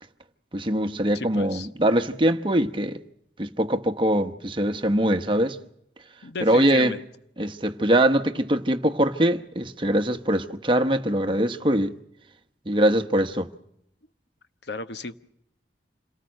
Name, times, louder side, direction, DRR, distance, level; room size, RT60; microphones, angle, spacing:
voice 1, 0.5-3.0 3.4-5.6 6.4-6.9 7.4-11.9 12.7-13.5, right 1 dB, 30° right, 1.0 m, -22 dB
voice 2, 1.1-1.7 6.2-7.0 14.6-15.2, left 3 dB, 80° left, 1.1 m, -34 dB
27.5 x 19.0 x 6.5 m
head